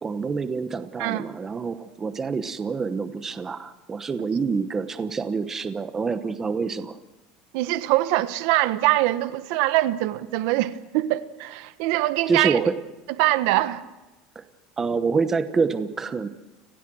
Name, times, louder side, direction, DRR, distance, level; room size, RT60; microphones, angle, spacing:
voice 1, 0.0-7.0 12.3-12.8 14.3-14.4 14.8-16.3, right 5 dB, 15° right, 1.0 m, -27 dB
voice 2, 7.5-12.7 13.2-13.8, right 16 dB, 65° right, 1.3 m, -23 dB
30.0 x 19.5 x 6.3 m
cardioid pair, 165°, 2 cm